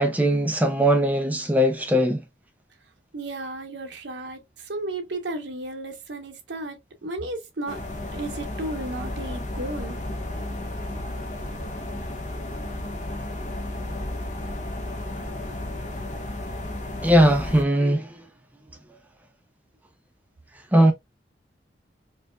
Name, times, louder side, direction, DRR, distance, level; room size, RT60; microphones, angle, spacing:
voice 1, 0.0-2.2 17.0-18.2 20.7-20.9, equal, 10° right, 0.4 m, -19 dB
voice 2, 3.1-7.8 8.1-10.0, right 2 dB, 85° right, 0.9 m, -34 dB
sound 1, 7.7-17.6, left 1 dB, 40° left, 0.6 m, -33 dB
4.4 x 2.3 x 2.2 m
head